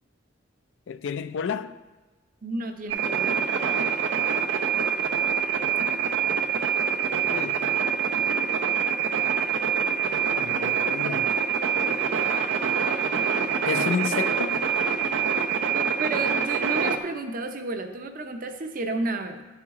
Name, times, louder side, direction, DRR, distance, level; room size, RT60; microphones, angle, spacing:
voice 1, 0.9-1.7 7.3-7.6 10.4-11.3 13.7-14.6, left 6 dB, 70° left, 0.3 m, -30 dB
voice 2, 2.4-3.4 15.7-19.5, right 2 dB, 45° right, 0.6 m, -32 dB
sound 1, 2.9-17.0, right 7 dB, 85° right, 0.6 m, -25 dB
11.0 x 4.5 x 3.6 m
head